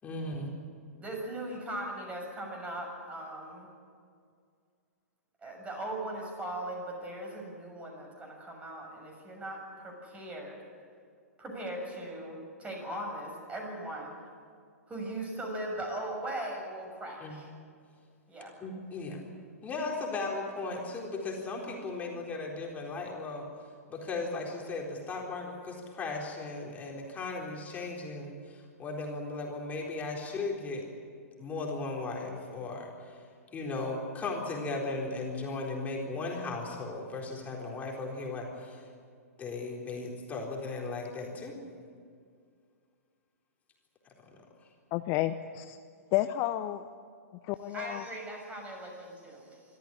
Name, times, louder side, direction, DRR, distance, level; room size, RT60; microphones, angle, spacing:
voice 1, 0.0-0.5 17.2-17.4 18.6-19.2 19.6-23.5 23.9-30.8 31.4-33.2 33.5-38.9 39.4-41.6, left 3 dB, 20° left, -1 dB, 4.1 m, -36 dB
voice 2, 1.0-3.7 5.4-10.6 11.4-14.1 14.9-17.5 18.3-18.5 47.7-49.6, right 1 dB, 15° right, 1 dB, 6.7 m, -39 dB
voice 3, 44.9-45.8 46.1-46.8 47.5-48.0, left 14 dB, 35° left, 10 dB, 0.7 m, -31 dB
25.0 x 13.5 x 9.9 m, 2.2 s
figure-of-eight pair, 110°, 8 cm